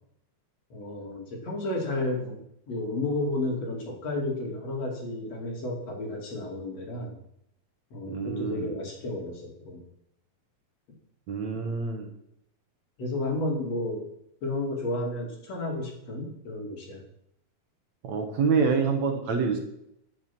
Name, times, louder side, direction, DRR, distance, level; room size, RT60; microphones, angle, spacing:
voice 1, 0.7-2.4 2.7-7.1 7.9-9.8 13.0-14.0 14.4-17.0, left 2 dB, 50° left, 0 dB, 3.5 m, -32 dB
voice 2, 8.1-8.8 11.3-12.1 18.0-19.6, right 5 dB, 60° right, 4 dB, 2.4 m, -27 dB
11.0 x 9.5 x 6.0 m, 0.76 s
omnidirectional pair, 3.9 m